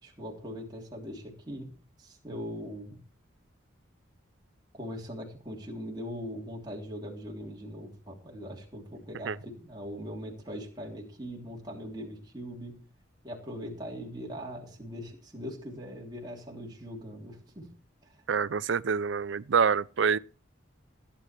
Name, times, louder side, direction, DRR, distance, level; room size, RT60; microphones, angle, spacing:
voice 1, 0.0-1.7 2.0-3.0 4.7-12.7 13.2-17.7 18.0-18.2, equal, 20° right, 3.2 m, -41 dB
voice 2, 18.3-20.2, right 6 dB, 65° right, 0.5 m, -26 dB
16.0 x 8.7 x 4.5 m
head